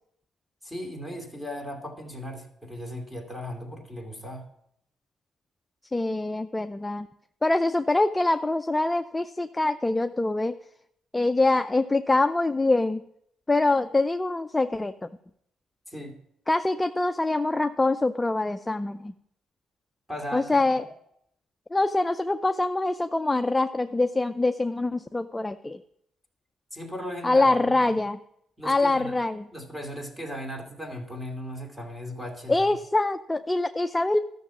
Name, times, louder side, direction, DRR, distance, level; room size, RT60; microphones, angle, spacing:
voice 1, 0.6-4.4 15.9-16.2 20.1-20.7 26.7-27.8 28.6-29.2 29.5-32.7, equal, 5° right, 2 dB, 2.7 m, -37 dB
voice 2, 5.9-7.1 7.4-10.5 11.1-13.0 13.5-14.9 16.5-19.1 20.3-20.8 21.7-25.8 27.2-28.2 28.6-29.5 32.5-34.2, left 2 dB, 15° left, 9 dB, 0.4 m, -24 dB
13.0 x 6.7 x 7.1 m, 0.76 s
cardioid pair, 90°, 0 cm